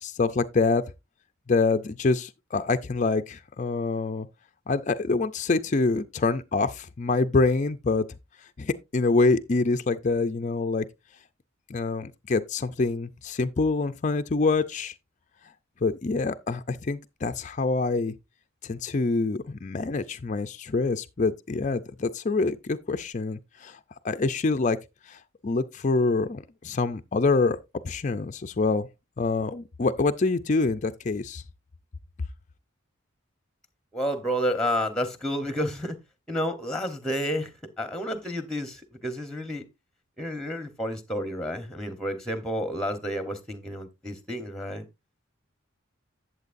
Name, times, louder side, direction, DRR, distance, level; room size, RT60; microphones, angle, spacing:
voice 1, 0.0-0.8 1.5-4.3 4.7-8.0 8.6-10.8 11.7-14.9 15.8-18.1 18.6-23.8 24.0-24.8 25.1-27.6 27.8-28.9 29.2-31.4, left 3 dB, 35° left, 0.4 m, -26 dB
voice 2, 33.9-36.0 36.3-39.6 40.2-44.9, equal, 5° left, 0.9 m, -30 dB
12.0 x 7.5 x 2.5 m
head